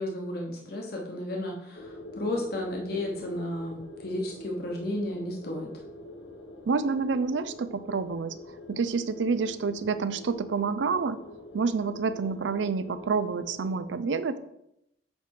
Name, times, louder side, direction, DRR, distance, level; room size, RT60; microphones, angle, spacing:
voice 1, 0.0-5.7, left 1 dB, 55° left, 0 dB, 1.0 m, -33 dB
sound 1, 1.7-13.8, left 1 dB, 75° left, 0.8 m, -45 dB
voice 2, 6.7-8.4 8.7-11.2 11.5-14.4, right 5 dB, 80° right, 13 dB, 0.4 m, -28 dB
7.9 x 3.3 x 4.7 m, 0.80 s
head